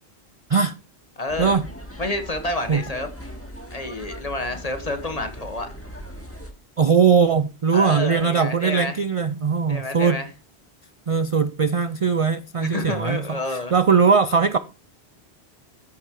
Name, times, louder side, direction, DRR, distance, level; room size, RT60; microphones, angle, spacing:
voice 1, 1.2-1.6 2.0-3.1 3.7-5.7 7.7-9.0 9.7-10.3 12.6-13.7, left 2 dB, 35° left, 1.7 m, -29 dB
sound 1, 1.3-6.5, equal, 10° left, 1.8 m, -39 dB
voice 2, 6.8-10.2 11.1-14.6, right 5 dB, 45° right, 0.5 m, -20 dB
13.5 x 5.6 x 4.7 m
omnidirectional pair, 1.1 m